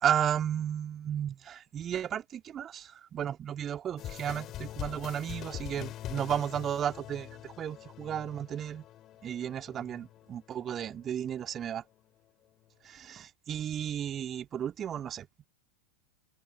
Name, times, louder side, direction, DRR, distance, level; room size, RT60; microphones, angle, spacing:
voice 1, 0.0-8.8 9.2-11.8 12.8-15.5, right 9 dB, 25° right, 3.0 m, -34 dB
sound 1, 4.0-11.7, left 13 dB, 30° left, 2.6 m, -44 dB
figure-of-eight pair, 90°, 0 cm